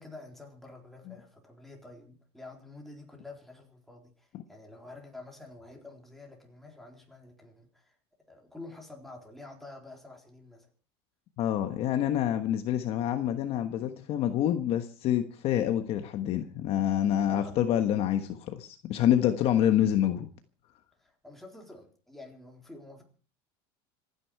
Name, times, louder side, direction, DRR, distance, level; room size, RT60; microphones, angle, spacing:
voice 1, 0.0-8.0 8.3-10.7 17.3-17.6 21.0-23.0, left 2 dB, ahead, 1 dB, 3.9 m, -48 dB
voice 2, 11.4-20.3, left 11 dB, 45° left, 8 dB, 1.3 m, -27 dB
26.5 x 10.0 x 4.8 m, 0.39 s
cardioid pair, 160°, 14 cm